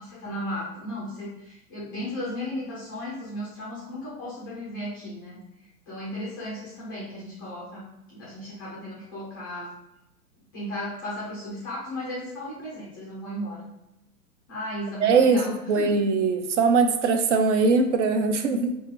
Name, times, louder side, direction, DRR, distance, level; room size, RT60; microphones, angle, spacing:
voice 1, 0.0-5.4 5.9-9.7 10.5-13.7 14.5-16.0, left 1 dB, 15° left, -7 dB, 0.3 m, -35 dB
voice 2, 15.0-18.8, right 4 dB, 50° right, 6 dB, 0.5 m, -21 dB
4.4 x 2.3 x 2.7 m, 0.89 s
figure-of-eight pair, 110°, 46 cm